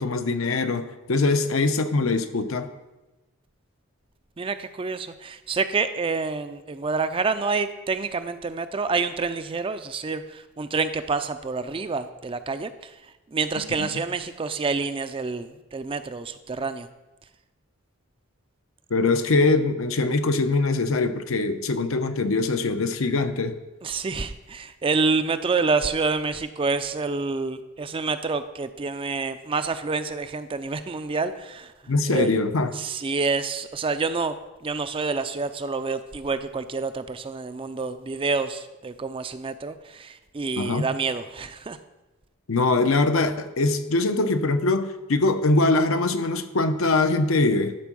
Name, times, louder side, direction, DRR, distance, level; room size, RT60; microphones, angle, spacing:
voice 1, 0.0-2.7 13.7-13.9 18.9-23.5 31.9-32.7 40.6-40.9 42.5-47.7, left 3 dB, 75° left, 9 dB, 0.7 m, -22 dB
voice 2, 4.4-12.9 13.3-16.9 23.8-31.7 32.1-32.3 32.8-41.8, right 4 dB, 25° right, 10 dB, 0.4 m, -28 dB
11.5 x 4.4 x 6.2 m, 1.1 s
head